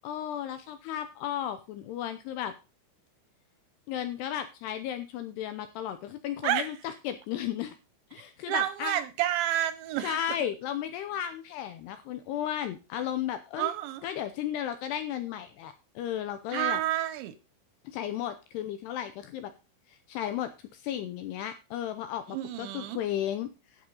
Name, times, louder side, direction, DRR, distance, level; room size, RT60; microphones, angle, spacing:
voice 1, 0.0-2.5 3.9-6.8 7.0-7.8 8.1-9.0 10.0-13.7 14.0-16.8 17.8-19.5 19.9-23.5, left 10 dB, 80° left, 2.4 m, -34 dB
voice 2, 8.5-10.2 13.6-14.1 16.5-17.4 22.3-23.0, right 13 dB, 80° right, 2.7 m, -29 dB
11.5 x 8.5 x 3.8 m
omnidirectional pair, 5.7 m